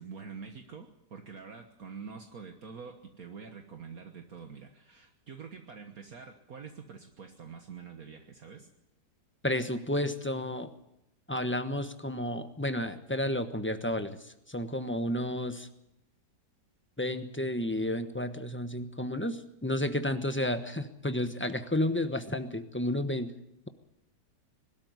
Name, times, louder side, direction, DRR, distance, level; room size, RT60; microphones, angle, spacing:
voice 1, 0.0-8.7, right 5 dB, 60° right, 5 dB, 1.8 m, -46 dB
voice 2, 9.4-10.7 11.3-15.7 17.0-23.3, left 1 dB, 10° left, 9 dB, 0.9 m, -31 dB
20.5 x 13.0 x 9.6 m, 0.83 s
omnidirectional pair, 1.8 m